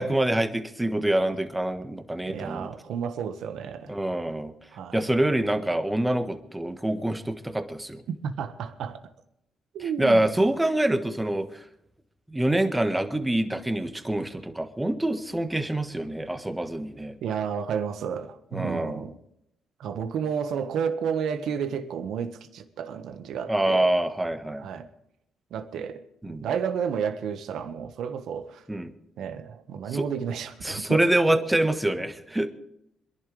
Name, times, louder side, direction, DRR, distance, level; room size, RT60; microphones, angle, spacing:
voice 1, 0.0-2.7 3.9-4.5 4.9-8.0 9.8-11.6 12.3-17.1 18.5-19.0 23.5-24.7 26.2-26.4 28.7-28.9 29.9-30.1 30.6-32.5, right 1 dB, 10° right, 1.4 m, -26 dB
voice 2, 2.3-3.9 4.7-5.0 8.2-9.0 9.7-10.3 17.2-19.2 19.8-23.9 24.6-24.9 25.5-28.6 29.2-31.1, right 7 dB, 75° right, 1.5 m, -31 dB
26.5 x 11.0 x 3.4 m
cardioid pair, 90°, 0 cm